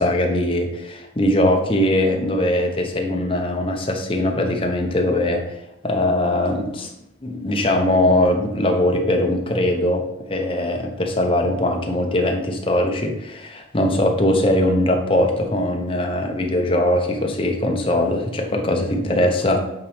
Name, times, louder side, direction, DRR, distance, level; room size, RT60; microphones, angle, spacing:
voice 1, 0.0-6.9 7.2-19.7, left 1 dB, 30° left, 3 dB, 0.8 m, -21 dB
8.2 x 4.1 x 3.5 m, 0.80 s
head